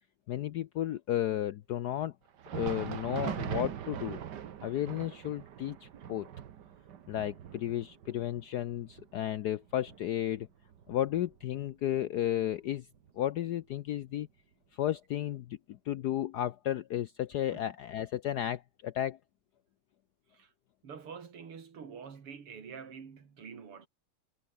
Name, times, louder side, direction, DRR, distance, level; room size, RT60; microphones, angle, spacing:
voice 1, 0.3-2.1 2.5-4.2 4.6-6.3 7.1-10.5 10.9-12.9 13.2-14.3 14.7-19.2, left 12 dB, 75° left, 0.9 m, -33 dB
Thunder, 2.3-11.7 12.1-12.2 12.9-13.1 14.1-14.2, right 9 dB, 55° right, 1.6 m, -42 dB
voice 2, 20.8-23.9, right 6 dB, 85° right, 3.5 m, -46 dB
omnidirectional pair, 2.4 m